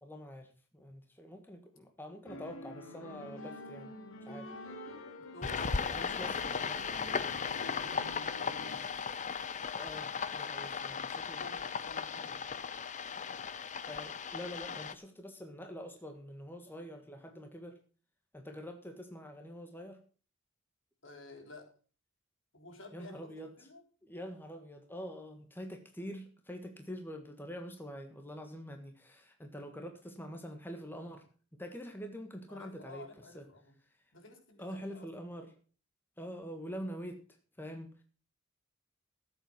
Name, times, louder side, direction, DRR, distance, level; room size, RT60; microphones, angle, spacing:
voice 1, 0.0-3.9 4.2-4.5 5.9-6.8 9.8-11.4 13.9-17.8 18.3-20.0 22.9-23.5 24.0-31.2 31.5-33.1 33.3-33.4 34.6-35.5 36.2-37.2 37.6-38.0, equal, 10° left, 4 dB, 1.6 m, -45 dB
sound 1, 2.2-8.8, left 1 dB, 85° left, 2.8 m, -47 dB
voice 2, 5.3-6.3 7.1-9.0 10.5-10.6 10.9-12.5 21.0-21.7 22.5-23.8 32.5-33.7 34.1-35.1, left 2 dB, 65° left, 4 dB, 3.5 m, -53 dB
sound 2, 5.4-14.9, left 6 dB, 35° left, 0.7 m, -37 dB
14.0 x 8.2 x 5.9 m, 0.39 s
head